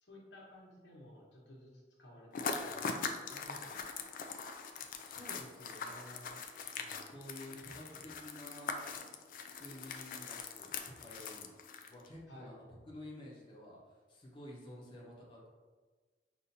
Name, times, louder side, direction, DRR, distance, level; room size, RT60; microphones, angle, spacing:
voice 1, 0.0-4.3 6.8-7.1 12.3-12.5, left 1 dB, 90° left, -4 dB, 1.1 m, -56 dB
sound 1, 2.3-12.1, left 5 dB, 50° left, 0.3 m, -42 dB
voice 2, 4.7-6.4 7.0-9.0 9.5-11.5 11.9-15.5, left 1 dB, 25° left, -5 dB, 0.8 m, -51 dB
5.5 x 2.5 x 2.7 m, 1.3 s
head